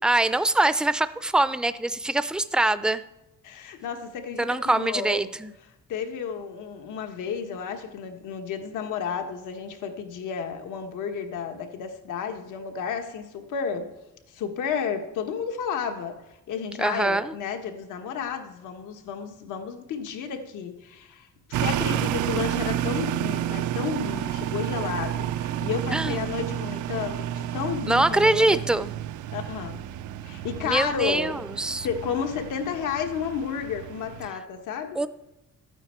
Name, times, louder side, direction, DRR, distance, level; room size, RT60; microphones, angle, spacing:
voice 1, 0.0-3.0 4.4-5.5 16.8-17.3 25.9-26.2 27.9-28.9 30.6-31.9 35.0-35.1, right 2 dB, 5° right, 14 dB, 0.5 m, -23 dB
voice 2, 3.4-5.2 5.9-13.9 14.3-16.2 16.5-21.3 21.6-28.6 29.3-29.8 30.2-31.4 31.8-35.0, left 7 dB, 85° left, 5 dB, 1.5 m, -32 dB
sound 1, 21.5-34.3, right 11 dB, 80° right, 0.5 m, -30 dB
12.0 x 9.0 x 4.5 m, 0.97 s
cardioid pair, 90°, 30 cm